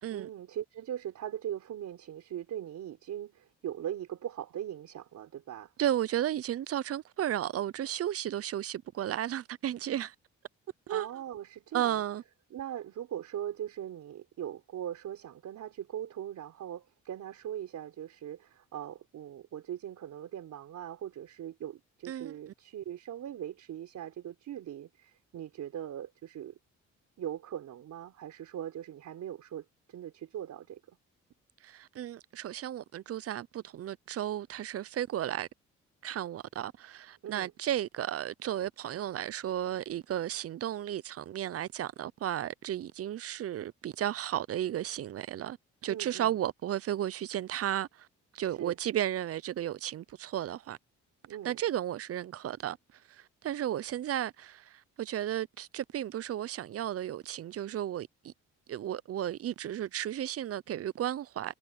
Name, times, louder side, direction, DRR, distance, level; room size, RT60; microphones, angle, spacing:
voice 1, 0.1-5.7 10.9-12.0 12.5-26.6 27.2-30.8 37.2-37.5 45.9-46.4 48.5-48.8 51.2-51.6, right 10 dB, 70° right, 3.9 m, -40 dB
voice 2, 5.8-10.1 10.9-11.1 11.7-12.2 22.1-22.4 31.6-35.5 36.0-45.6 45.8-48.1 48.3-50.8 51.4-52.8 53.1-58.3 58.7-61.5, right 11 dB, 50° right, 0.6 m, -34 dB
cardioid pair, 90°, 30 cm